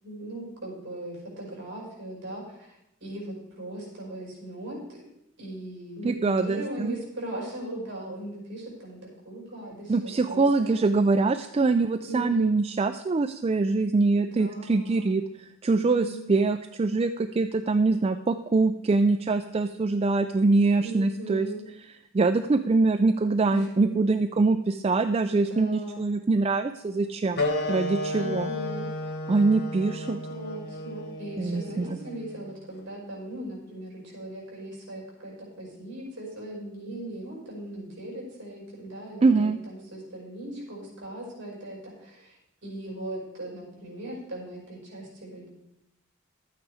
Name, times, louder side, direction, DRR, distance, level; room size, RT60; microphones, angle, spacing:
voice 1, 0.0-5.0 5.4-9.0 9.2-10.8 12.1-12.5 14.2-15.1 15.8-16.3 20.8-21.6 23.5-23.8 25.3-26.0 28.2-28.9 29.8-45.5, right 1 dB, 55° right, -2 dB, 5.5 m, -39 dB
voice 2, 6.0-6.9 9.9-15.2 15.6-21.5 22.1-28.5 29.3-30.2 31.4-32.0 39.2-39.6, right 3 dB, 25° right, 9 dB, 0.3 m, -24 dB
sound 1, 27.4-32.5, left 2 dB, 45° left, 1.4 m, -33 dB
12.0 x 8.9 x 4.8 m, 0.85 s
head